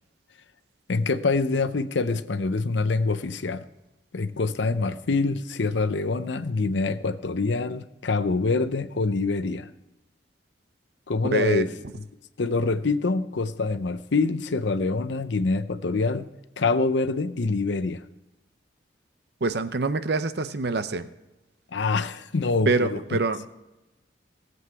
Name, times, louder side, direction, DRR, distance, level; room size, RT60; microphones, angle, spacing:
voice 1, 0.9-3.6 4.1-9.7 11.1-11.7 12.4-16.3 16.6-18.0 21.7-23.2, left 3 dB, 80° left, 12 dB, 0.7 m, -25 dB
voice 2, 11.3-11.7 19.4-21.1 22.7-23.5, right 3 dB, 60° right, 11 dB, 0.7 m, -25 dB
17.5 x 8.0 x 4.7 m, 0.99 s
head